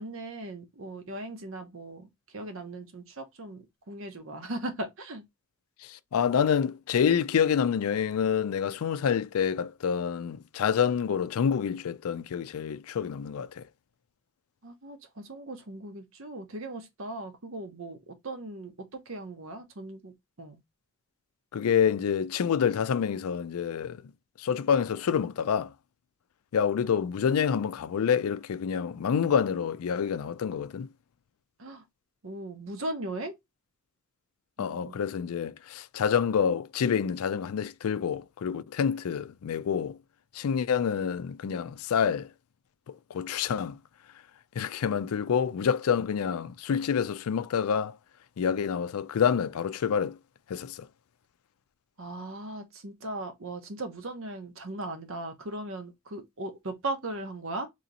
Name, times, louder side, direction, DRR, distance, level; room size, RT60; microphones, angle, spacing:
voice 1, 0.0-2.1 2.3-5.2 14.6-20.6 31.6-31.8 32.2-33.4 34.6-35.0 52.0-57.7, right 2 dB, 65° right, 0.8 m, -38 dB
voice 2, 5.8-13.7 21.5-24.0 24.4-25.7 26.5-30.9 34.6-40.0 40.3-42.3 43.1-43.8 44.6-48.0 48.4-50.2 50.5-50.9, left 7 dB, 80° left, 0.4 m, -27 dB
3.1 x 2.8 x 3.8 m
head